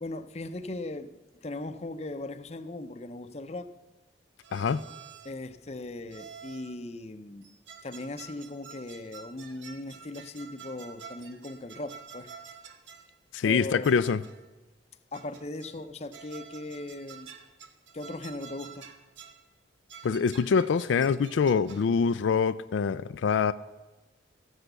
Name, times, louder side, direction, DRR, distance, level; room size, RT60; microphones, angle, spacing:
voice 1, 0.0-1.1 1.4-3.7 5.2-7.5 7.8-12.3 13.4-14.1 15.1-17.3 17.9-18.9, left 2 dB, 35° left, 0.6 m, -38 dB
sound 1, 4.4-5.4 6.1-6.8 7.4-13.2 13.8-14.5 15.1-15.9 16.1-19.4 19.9-22.0, right 7 dB, 85° right, 1.0 m, -49 dB
voice 2, 13.3-14.2 20.0-23.5, left 6 dB, 85° left, 0.4 m, -25 dB
14.0 x 8.1 x 6.7 m
head